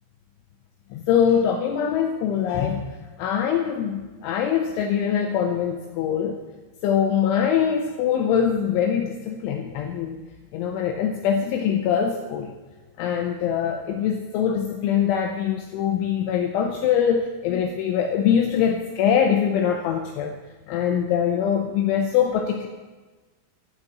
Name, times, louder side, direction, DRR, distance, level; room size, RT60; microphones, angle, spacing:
voice 1, 0.9-2.9 3.2-6.4 6.8-10.2 10.5-12.5 13.0-20.3 20.7-22.7, left 8 dB, 80° left, 3 dB, 3.0 m, -23 dB
12.0 x 6.3 x 8.7 m, 1.3 s
omnidirectional pair, 6.0 m